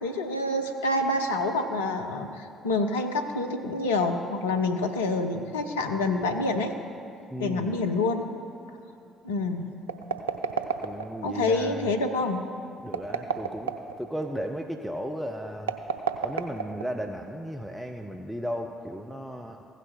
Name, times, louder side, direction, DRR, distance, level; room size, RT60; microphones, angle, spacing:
voice 1, 0.0-6.7 7.4-8.2 9.2-9.7 11.2-12.4, left 2 dB, 75° left, 4 dB, 0.7 m, -27 dB
voice 2, 7.3-7.9 10.8-11.9 12.8-15.8 16.2-19.7, equal, ahead, 3 dB, 0.7 m, -35 dB
sound 1, 9.8-11.3 12.8-14.0 15.6-17.1, right 6 dB, 80° right, 0.4 m, -30 dB
15.5 x 6.1 x 4.2 m, 2.6 s
figure-of-eight pair, 50°, 0 cm